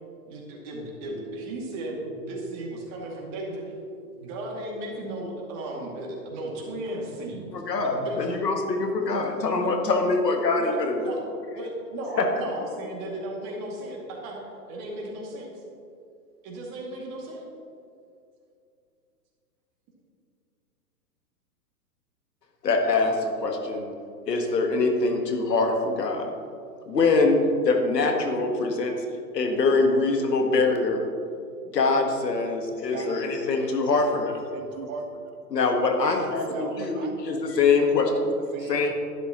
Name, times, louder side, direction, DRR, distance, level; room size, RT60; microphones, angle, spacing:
voice 1, 0.3-3.6 4.2-7.5 7.8-8.4 9.0-9.7 10.6-11.2 11.5-15.6 16.4-17.4, right 1 dB, 35° right, -2 dB, 2.3 m, -35 dB
sound 1, 1.0-9.9, right 7 dB, 20° right, 1.5 m, -49 dB
voice 2, 7.5-11.1 12.2-12.3 22.6-23.9 24.3-26.3 26.9-27.4 27.6-28.9 29.3-31.0 31.7-34.4 35.5-38.3 38.7-38.9, left 3 dB, 80° left, 4 dB, 1.6 m, -24 dB
voice 3, 32.9-33.6 33.9-35.4 36.0-38.9, right 4 dB, 55° right, 5 dB, 1.4 m, -38 dB
11.5 x 10.0 x 3.0 m, 2.5 s
hypercardioid pair, 125°, 48 cm